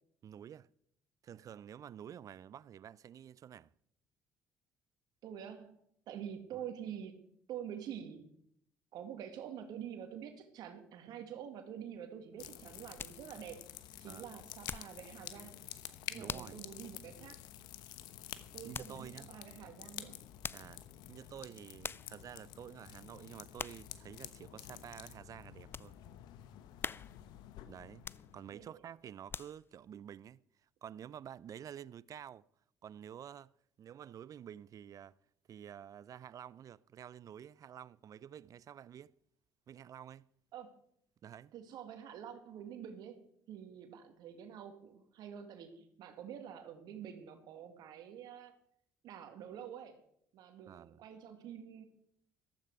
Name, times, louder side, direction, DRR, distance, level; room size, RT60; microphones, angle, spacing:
voice 1, 0.2-0.7 1.2-3.7 6.5-6.6 14.1-14.3 16.1-16.6 18.6-19.3 20.5-26.0 27.7-28.0 28.3-30.4 30.8-32.5 32.8-33.5 33.8-35.1 35.5-39.1 39.7-40.3 41.2-41.5 50.7-51.0, right 9 dB, 50° right, 0.5 m, -50 dB
voice 2, 5.2-5.8 6.1-7.2 7.5-8.3 8.9-13.6 14.0-15.7 16.1-17.4 18.5-20.2 28.5-28.8 40.5-40.7 41.5-43.2 43.5-48.6 49.0-50.0 50.3-51.9, right 9 dB, 65° right, 2.1 m, -47 dB
sound 1, 12.3-15.1 15.4-15.8 16.3-16.6 17.1-17.2 18.7-19.0 20.2-20.8 21.4-21.5 21.8-22.2 22.7-23.0 23.6-23.9 24.4-24.5 25.1-26.0 26.4-26.5 26.8-27.4 27.9-28.6 29.1-29.8 30.3-30.4, left 5 dB, 30° left, 0.4 m, -45 dB
sound 2, 12.4-28.7, left 12 dB, 70° left, 1.0 m, -50 dB
14.5 x 13.5 x 4.8 m
hypercardioid pair, 55°, 8 cm